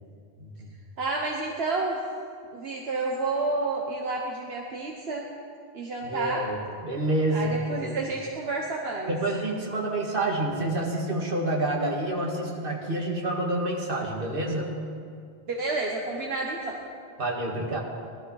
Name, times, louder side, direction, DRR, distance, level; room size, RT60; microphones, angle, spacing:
voice 1, 0.4-0.7 6.0-8.0 9.1-14.8 17.2-17.8, right 1 dB, 60° right, 0 dB, 2.1 m, -28 dB
voice 2, 1.0-2.0 2.5-5.2 5.7-6.5 7.3-9.1 15.5-16.8, right 3 dB, 80° right, 0 dB, 1.3 m, -30 dB
18.5 x 13.0 x 4.8 m, 2.3 s
omnidirectional pair, 1.0 m